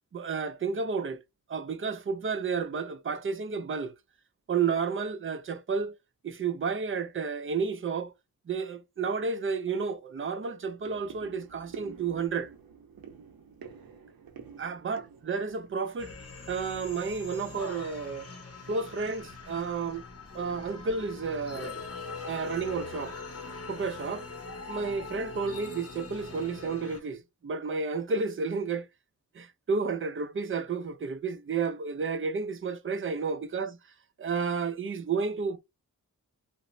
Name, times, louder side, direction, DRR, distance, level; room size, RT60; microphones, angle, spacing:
voice 1, 0.1-1.2 1.5-3.9 4.5-5.9 6.2-8.1 8.5-12.5 14.6-16.1 16.5-18.3 18.7-20.0 20.3-21.7 22.2-23.1 23.7-24.3 24.7-28.9 29.3-33.7 34.2-35.6, right 5 dB, 40° right, 0.4 m, -31 dB
sound 1, 9.3-9.4 9.8-10.0 10.4-16.9 17.2-17.8 18.2-18.4 18.7-18.8 19.3-19.5 19.8-19.9 20.4-20.9 21.5-21.7 22.0-22.7 23.0-23.1, right 6 dB, 80° right, 0.6 m, -49 dB
sound 2, 16.0-27.0, left 4 dB, 45° left, 0.7 m, -42 dB
2.9 x 2.0 x 2.5 m
wide cardioid pair, 95°, 35 cm